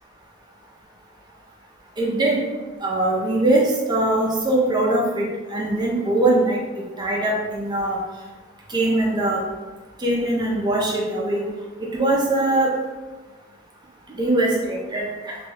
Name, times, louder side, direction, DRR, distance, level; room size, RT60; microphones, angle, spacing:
voice 1, 2.0-2.4 2.8-6.6 7.0-8.0 8.7-9.4 10.0-11.4 11.8-12.7 14.2-15.4, right 2 dB, 20° right, -2 dB, 0.4 m, -21 dB
2.2 x 2.2 x 3.2 m, 1.3 s
head